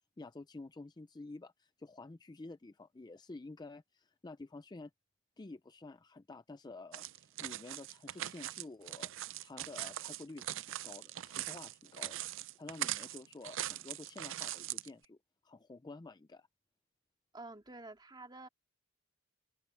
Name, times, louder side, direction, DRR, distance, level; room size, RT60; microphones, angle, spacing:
voice 1, 0.0-4.9 5.4-12.3 12.5-15.2 15.4-16.5, left 3 dB, 20° left, 0.4 m, -50 dB
sound 1, 6.9-14.9, right 13 dB, 65° right, 0.5 m, -41 dB
voice 2, 17.3-18.5, right 2 dB, 20° right, 2.3 m, -49 dB
open air
head